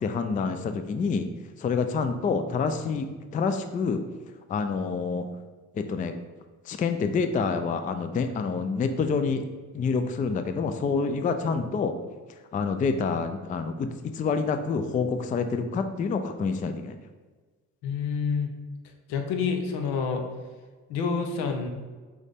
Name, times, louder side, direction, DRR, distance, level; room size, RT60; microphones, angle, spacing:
voice 1, 0.0-1.3 1.6-3.1 3.3-4.0 4.5-5.3 5.7-6.1 6.7-9.4 9.7-12.0 12.5-17.0, left 5 dB, 20° left, 8 dB, 0.3 m, -27 dB
voice 2, 17.8-18.5 19.1-20.2 20.9-21.7, left 5 dB, 75° left, 5 dB, 0.8 m, -28 dB
6.2 x 2.1 x 3.5 m, 1.4 s
hypercardioid pair, 55°, 40 cm